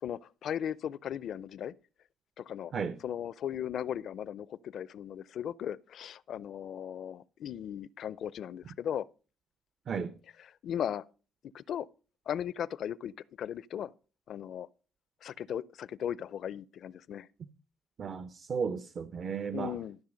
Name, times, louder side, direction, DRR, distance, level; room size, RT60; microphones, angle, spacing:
voice 1, 0.0-1.7 2.4-2.7 3.0-9.1 10.4-11.1 11.5-11.9 12.3-13.9 14.3-14.7 15.2-17.3 19.5-20.0, left 9 dB, 70° left, 0.5 m, -37 dB
voice 2, 18.0-19.7, right 6 dB, 50° right, 0.7 m, -34 dB
13.0 x 6.1 x 5.1 m
cardioid pair, 90°, 0 cm